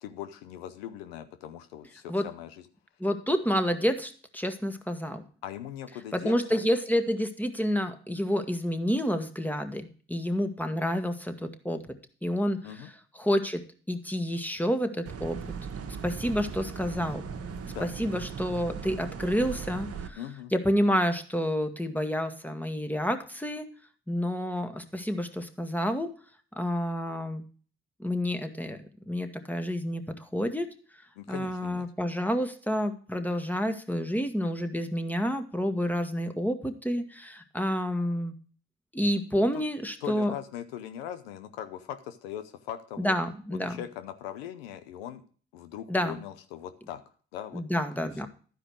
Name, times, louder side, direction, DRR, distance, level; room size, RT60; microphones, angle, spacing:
voice 1, 0.0-2.6 5.4-6.6 12.6-12.9 17.7-17.9 20.2-20.5 31.2-31.9 39.5-39.6 40.0-43.1 43.5-45.2 45.5-47.0 47.3-47.9, left 10 dB, 90° left, 9 dB, 0.7 m, -40 dB
voice 2, 3.0-5.2 6.1-11.9 12.2-12.6 13.2-15.4 16.0-17.2 17.8-20.2 20.5-23.7 24.1-26.1 26.6-27.4 28.0-30.7 31.3-38.3 38.9-40.3 43.0-43.8 45.9-46.2 47.5-48.3, equal, 5° left, 6 dB, 1.6 m, -29 dB
sound 1, 15.1-20.1, right 6 dB, 55° right, 1.1 m, -38 dB
11.5 x 5.1 x 6.3 m, 0.42 s
hypercardioid pair, 45°, 29 cm